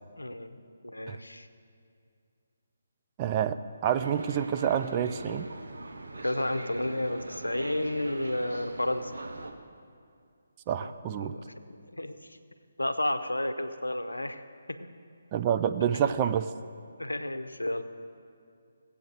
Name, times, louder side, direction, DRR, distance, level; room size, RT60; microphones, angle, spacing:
voice 1, 0.2-0.6 0.8-1.5 6.2-9.1 10.8-12.1 12.8-14.4 14.7-14.8 15.9-16.0 17.0-17.8, left 1 dB, 85° left, 9 dB, 0.7 m, -32 dB
voice 2, 3.2-5.5 10.7-11.3 15.3-16.5, right 9 dB, 25° right, 9 dB, 0.3 m, -28 dB
sound 1, 3.8-9.5, right 2 dB, 65° right, 0.9 m, -41 dB
16.5 x 8.4 x 4.0 m, 2.3 s
figure-of-eight pair, 145°, 0 cm